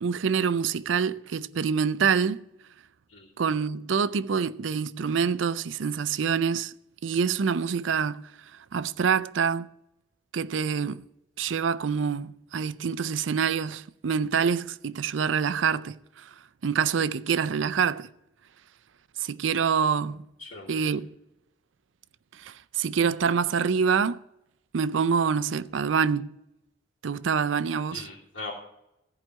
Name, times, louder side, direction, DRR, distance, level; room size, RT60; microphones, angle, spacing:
voice 1, 0.0-2.4 3.4-6.7 7.0-9.7 10.3-11.1 11.4-16.3 16.6-18.1 19.2-20.2 20.7-21.1 22.3-24.2 24.7-26.4 27.0-28.1, right 6 dB, 80° right, 0.5 m, -26 dB
voice 2, 20.4-20.9 27.9-28.5, left 3 dB, 75° left, 3.1 m, -40 dB
14.5 x 4.9 x 9.0 m
head